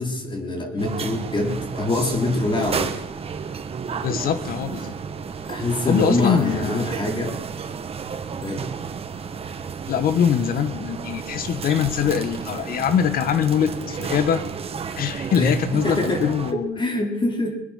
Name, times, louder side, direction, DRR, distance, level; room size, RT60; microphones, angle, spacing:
voice 1, 0.0-3.0 5.5-7.4 8.4-8.7 15.4-15.5 15.8-17.6, left 2 dB, 30° left, 3 dB, 3.7 m, -25 dB
sound 1, 0.8-16.5, right 6 dB, 35° right, 1.4 m, -32 dB
voice 2, 4.0-5.0 5.9-6.8 9.9-14.4 14.9-16.8, left 8 dB, 60° left, 12 dB, 1.5 m, -23 dB
22.5 x 10.0 x 5.9 m, 0.86 s
cardioid pair, 110°, 17 cm